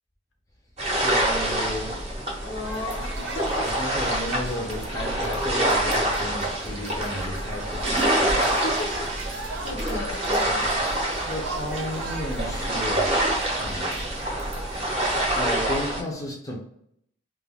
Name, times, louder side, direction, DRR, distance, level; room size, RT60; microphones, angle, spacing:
sound 1, 0.8-16.0, right 1 dB, 35° right, 0.6 m, -26 dB
voice 1, 1.0-2.0 3.8-8.5 10.5-10.7 11.2-13.1 13.5-14.0 15.3-16.6, left 1 dB, 20° left, -2 dB, 0.5 m, -33 dB
voice 2, 2.4-3.8 8.4-9.1 9.6-10.6, left 2 dB, 60° left, 1 dB, 0.6 m, -34 dB
sound 2, 2.6-15.3, right 3 dB, 80° right, 0.6 m, -39 dB
2.2 x 2.2 x 3.3 m, 0.71 s
head